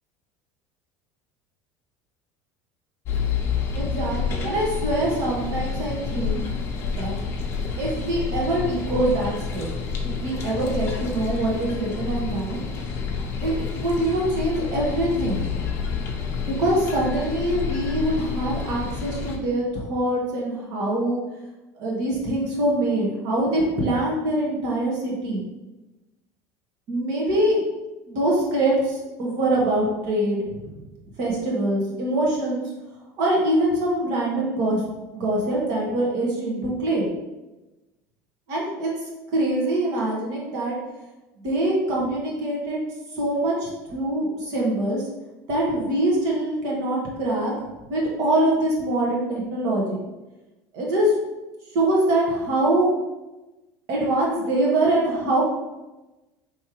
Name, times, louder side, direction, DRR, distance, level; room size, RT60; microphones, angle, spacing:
sound 1, 3.0-19.4, left 5 dB, 35° left, 0.7 m, -29 dB
voice 1, 3.7-6.4 6.9-7.2 7.8-9.7 10.2-12.6 13.4-15.4 16.5-21.2 21.8-25.4 26.9-27.6 28.1-30.7 31.2-32.7 33.2-34.8 35.1-37.0 38.5-38.9 39.3-40.7 41.4-42.8 43.2-45.0 45.5-47.5 47.9-49.8 50.7-51.1 51.7-52.9 53.9-55.4, right 1 dB, 55° right, -3 dB, 1.4 m, -24 dB
4.9 x 3.3 x 3.0 m, 1.1 s
cardioid pair, 165°, 7 cm